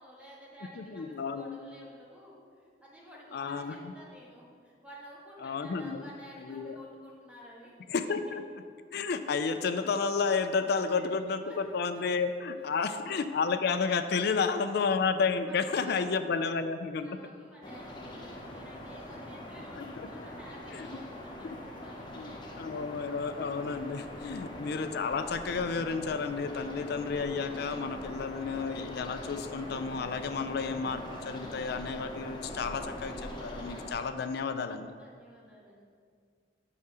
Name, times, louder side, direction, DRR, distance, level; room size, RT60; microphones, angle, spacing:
voice 1, 0.0-7.7 10.7-11.1 11.4-11.7 15.5-15.6 15.8-16.0 16.6-16.7 17.0-22.1 34.9-35.9, equal, 5° right, -6 dB, 1.8 m, -52 dB
voice 2, 0.8-1.5 3.3-3.9 5.4-6.0 6.4-6.8 7.9-8.4 8.9-17.2 19.8-20.1 20.7-21.0 21.4-21.6 22.1-34.9, left 5 dB, 60° left, 9 dB, 0.4 m, -31 dB
sound 1, 17.6-33.9, left 1 dB, 25° left, 0.9 m, -42 dB
7.0 x 4.8 x 6.1 m, 2.1 s
head